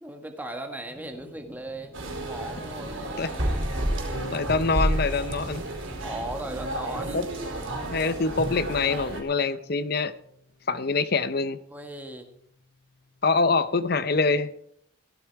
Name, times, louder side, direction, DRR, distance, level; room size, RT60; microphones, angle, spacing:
voice 1, 0.0-2.0 2.2-3.2 6.0-7.2 11.7-12.3, right 1 dB, 10° right, 4 dB, 1.5 m, -37 dB
sound 1, 0.9-7.9, equal, 5° left, 2.9 m, -50 dB
sound 2, 1.9-9.2, right 1 dB, 75° right, 4.5 m, -31 dB
sound 3, 4.1-11.0 12.0-13.8, left 2 dB, 75° left, 4.5 m, -48 dB
voice 2, 4.3-5.6 7.1-7.2 7.9-10.1 10.7-11.6 13.2-14.5, left 4 dB, 50° left, 14 dB, 0.7 m, -25 dB
16.5 x 14.0 x 4.7 m, 0.70 s
head